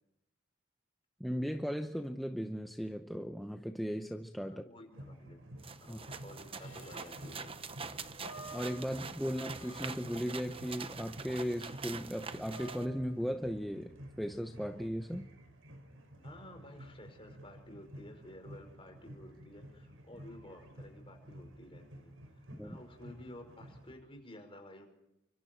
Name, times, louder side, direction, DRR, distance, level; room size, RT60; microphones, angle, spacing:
voice 1, 1.2-4.6 5.9-6.0 8.5-15.3 22.5-22.8, equal, ahead, 5 dB, 0.8 m, -37 dB
voice 2, 4.4-5.4 5.8-7.5 16.2-22.2 22.6-24.9, left 1 dB, 25° left, 4 dB, 5.2 m, -52 dB
sound 1, 4.9-24.0, equal, 70° right, 5.6 m, -52 dB
sound 2, 5.6-12.9, right 5 dB, 25° right, 1.0 m, -45 dB
sound 3, 6.6-13.3, right 1 dB, 85° left, 2.4 m, -53 dB
29.0 x 25.5 x 4.6 m, 0.89 s
head